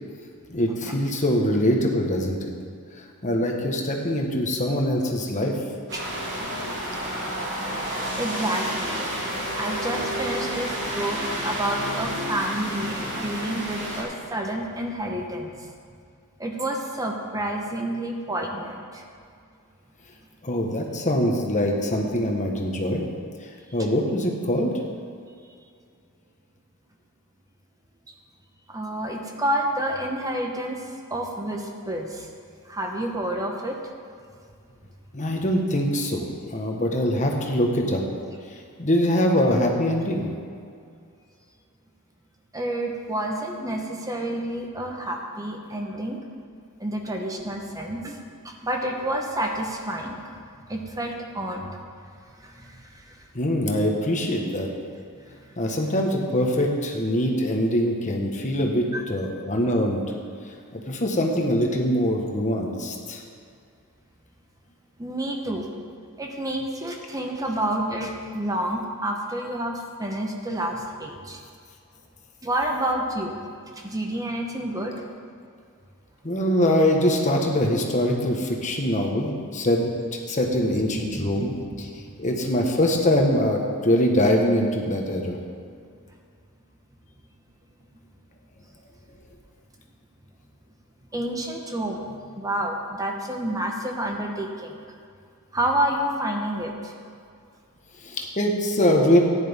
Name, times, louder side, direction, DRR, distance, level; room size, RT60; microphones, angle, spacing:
voice 1, 0.5-2.5 3.2-5.5 20.4-23.1 23.7-24.7 35.1-36.2 36.5-38.0 38.5-40.3 53.3-54.7 55.6-60.0 60.7-63.2 76.2-81.9 82.2-85.4 98.0-99.2, equal, 35° left, 1 dB, 1.3 m, -23 dB
sound 1, 5.9-14.0, equal, 55° right, 3.1 m, -30 dB
voice 2, 8.2-9.0 9.6-15.6 16.4-19.0 28.1-28.2 28.7-32.3 32.6-33.8 42.5-46.2 46.8-48.2 48.4-50.3 50.6-51.8 52.4-53.3 55.2-55.5 58.9-59.0 65.0-65.7 66.2-71.4 72.4-73.4 73.7-74.9 80.6-80.8 81.1-81.5 82.0-82.6 85.7-85.8 91.1-94.8 95.5-96.9, right 1 dB, 15° right, 1 dB, 1.0 m, -29 dB
15.0 x 10.0 x 3.6 m, 2.3 s
head